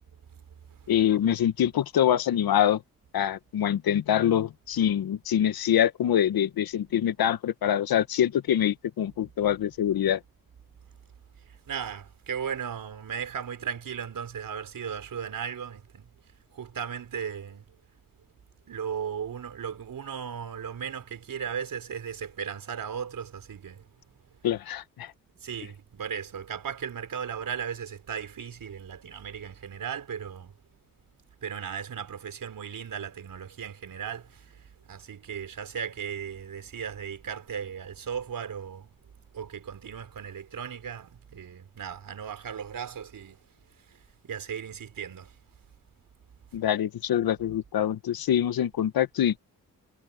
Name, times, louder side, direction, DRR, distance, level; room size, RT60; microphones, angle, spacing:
voice 1, 0.9-2.8 3.1-10.2 24.4-25.1 46.5-49.4, left 10 dB, 80° left, 1.5 m, -25 dB
voice 2, 11.7-16.1 16.5-17.6 18.7-23.8 25.4-30.5 31.4-38.9 39.3-43.4 43.9-44.0 44.2-45.3, right 7 dB, 65° right, 5.1 m, -36 dB
cardioid pair, 60°, 36 cm